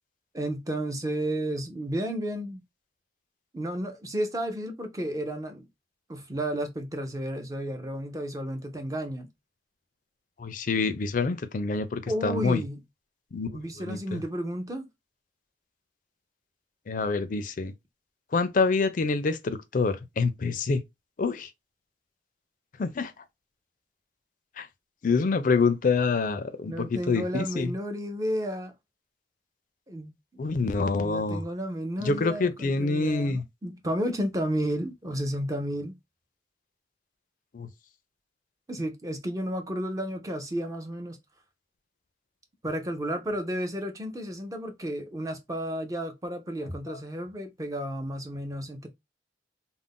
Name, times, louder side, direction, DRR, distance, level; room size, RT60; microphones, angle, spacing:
voice 1, 0.3-2.6 3.5-5.7 6.1-9.3 12.1-12.8 13.5-14.9 26.7-28.7 29.9-30.1 30.6-30.7 31.0-36.0 38.7-41.2 42.6-48.9, equal, 20° right, 0.5 m, -32 dB
voice 2, 10.4-12.6 13.3-14.2 16.9-17.7 18.3-20.8 21.2-21.5 22.8-23.1 24.6-24.7 25.0-27.7 30.4-31.4 32.0-33.4 37.5-37.7 46.9-47.0, left 4 dB, 45° left, 0.4 m, -26 dB
2.5 x 2.1 x 3.5 m
head